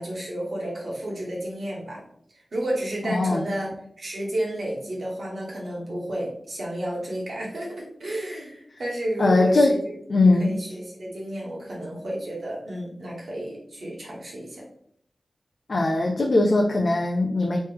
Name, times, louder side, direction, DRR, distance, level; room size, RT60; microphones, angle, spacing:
voice 1, 0.0-2.0 2.3-3.7 4.0-10.0 10.4-14.6, right 1 dB, 75° right, -3 dB, 1.3 m, -31 dB
voice 2, 3.0-3.5 9.2-9.8 10.1-10.6 15.7-17.6, left 2 dB, 60° left, 0 dB, 0.4 m, -20 dB
3.1 x 3.1 x 3.3 m, 0.68 s
wide cardioid pair, 65°, 0 cm